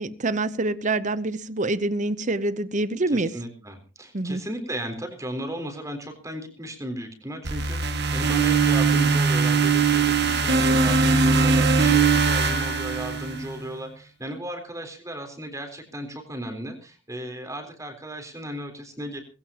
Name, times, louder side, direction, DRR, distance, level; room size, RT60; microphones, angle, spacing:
voice 1, 0.0-3.3 4.1-4.4, right 2 dB, 40° right, 15 dB, 0.9 m, -26 dB
voice 2, 3.1-19.2, right 1 dB, 15° right, 5 dB, 4.0 m, -35 dB
sound 1, 7.4-13.6, right 4 dB, 60° right, 2.0 m, -21 dB
20.5 x 16.0 x 3.0 m, 0.35 s
head